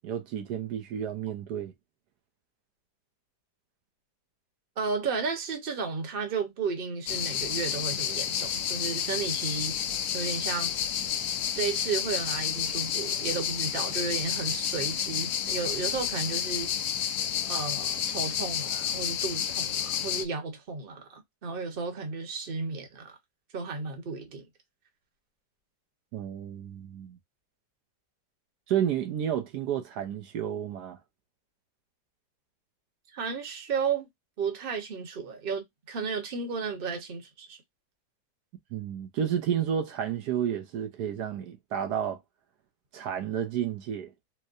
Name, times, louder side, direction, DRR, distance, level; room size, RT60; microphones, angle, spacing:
voice 1, 0.0-1.7 26.1-27.2 28.7-31.0 38.7-42.2 42.9-44.1, right 9 dB, 75° right, 1.2 m, -31 dB
voice 2, 4.8-9.8 10.1-10.7 11.5-16.7 17.5-23.2 23.5-24.5 33.1-34.1 34.4-37.6, right 5 dB, 40° right, 1.1 m, -33 dB
sound 1, 7.1-20.3, left 9 dB, 70° left, 1.0 m, -30 dB
4.5 x 2.1 x 2.4 m
omnidirectional pair, 1.8 m